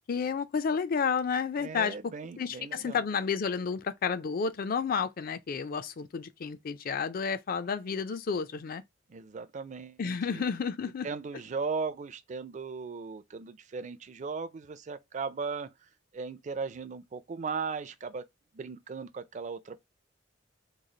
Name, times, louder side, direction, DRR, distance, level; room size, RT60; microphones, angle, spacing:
voice 1, 0.1-2.0 2.4-8.8 10.0-11.1, left 6 dB, 50° left, 0.4 m, -31 dB
voice 2, 1.6-3.0 9.1-10.4 11.0-15.7 16.1-18.2 18.5-19.8, right 5 dB, 40° right, 0.4 m, -37 dB
3.1 x 2.4 x 3.8 m
head